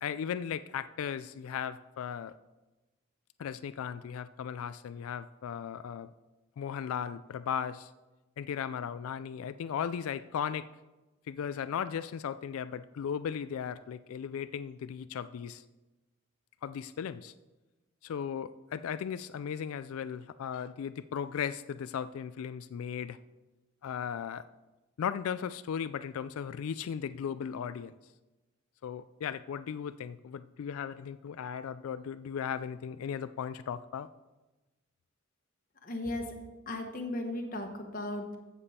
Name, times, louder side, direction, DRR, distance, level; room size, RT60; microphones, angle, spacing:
voice 1, 0.0-2.3 3.4-6.1 6.6-7.9 8.4-10.7 11.3-15.6 16.6-17.3 18.0-23.2 23.8-24.4 25.0-27.9 28.8-34.1, left 8 dB, 80° left, 14 dB, 0.3 m, -36 dB
voice 2, 35.8-36.3 36.7-38.4, left 1 dB, 40° left, 3 dB, 1.1 m, -36 dB
14.0 x 7.0 x 4.3 m, 1.1 s
head